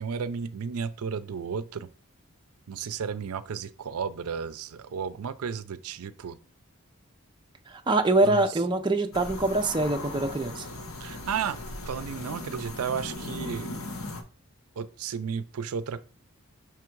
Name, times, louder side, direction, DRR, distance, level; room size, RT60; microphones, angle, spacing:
voice 1, 0.0-1.9 2.7-6.4 8.3-8.4 11.0-13.8 14.8-16.0, right 6 dB, 80° right, 0.5 m, -33 dB
voice 2, 7.7-10.7, right 2 dB, 20° right, 0.5 m, -24 dB
sound 1, 9.1-14.2, left 2 dB, 70° left, 1.0 m, -38 dB
5.9 x 3.6 x 4.5 m
head